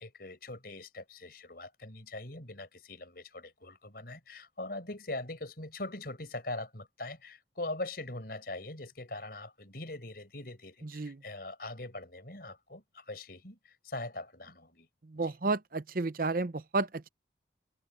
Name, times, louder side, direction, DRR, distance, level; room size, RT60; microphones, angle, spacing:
voice 1, 0.0-14.9 15.1-15.3, left 2 dB, 55° left, 5.0 m, -42 dB
voice 2, 15.1-17.1, right 3 dB, 50° right, 0.7 m, -31 dB
head